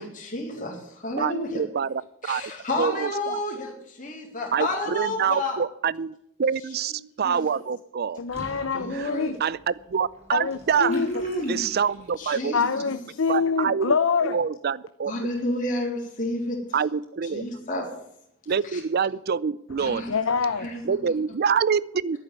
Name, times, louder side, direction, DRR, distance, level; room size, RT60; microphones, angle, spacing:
voice 1, 0.0-1.6 2.2-5.6 7.2-7.4 8.7-9.3 10.9-11.6 12.2-13.0 15.1-16.6 17.3-17.9 18.7-18.8 19.8-20.3 20.6-20.8, left 1 dB, 40° left, -2 dB, 3.7 m, -30 dB
voice 2, 1.1-2.4 2.8-3.4 4.5-6.1 6.4-6.9 7.2-8.2 8.9-9.1 9.4-10.9 11.5-12.7 13.3-13.9 14.2-15.1 16.7-17.4 18.5-20.2 20.8-22.2, right 6 dB, 50° right, 21 dB, 0.4 m, -26 dB
voice 3, 8.2-9.4 10.3-11.2 12.5-14.4 20.1-20.7, left 5 dB, 75° left, 10 dB, 0.7 m, -25 dB
Water / Bathtub (filling or washing), 8.3-12.3, equal, 35° right, 4.5 m, -47 dB
11.0 x 8.7 x 9.4 m, 0.77 s
head